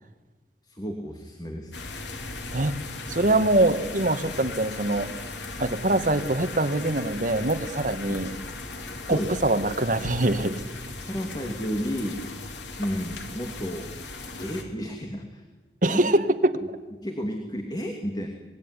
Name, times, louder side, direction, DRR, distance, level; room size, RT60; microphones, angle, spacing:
voice 1, 0.6-1.7 8.1-8.2 9.0-9.3 11.0-12.3 12.8-13.9 14.4-15.4 15.8-16.0 17.0-18.3, equal, 25° left, 3 dB, 2.7 m, -32 dB
sound 1, 1.7-14.6, left 3 dB, 80° left, 3.6 m, -37 dB
voice 2, 3.1-5.1 5.6-8.3 9.1-10.9 15.8-16.5, right 2 dB, 45° right, 8 dB, 1.9 m, -24 dB
26.5 x 21.0 x 10.0 m, 1.3 s
head